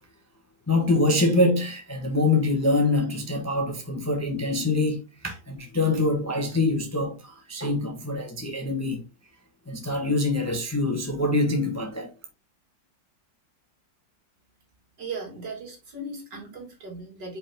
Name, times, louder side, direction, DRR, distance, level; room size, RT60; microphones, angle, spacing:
voice 1, 0.7-9.0 9.7-12.1, left 2 dB, 10° left, 0.9 m, -25 dB
voice 2, 15.0-17.4, right 3 dB, 70° right, 3.0 m, -37 dB
5.3 x 5.1 x 3.6 m
omnidirectional pair, 2.0 m